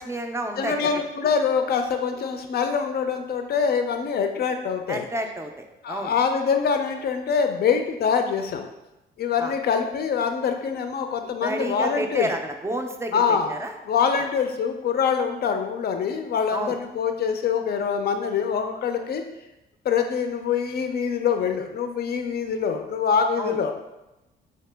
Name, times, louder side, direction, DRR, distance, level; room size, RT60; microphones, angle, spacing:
voice 1, 0.0-0.9 4.9-6.1 9.4-9.5 11.4-13.7 14.2-14.3 16.5-16.8 23.4-23.6, right 1 dB, 15° right, 4 dB, 0.4 m, -30 dB
voice 2, 0.6-5.0 5.8-8.7 9.2-12.3 13.1-13.6 13.8-19.2 19.8-23.7, left 6 dB, 55° left, 6 dB, 0.5 m, -24 dB
2.9 x 2.8 x 3.3 m, 0.96 s
cardioid pair, 90°, 20 cm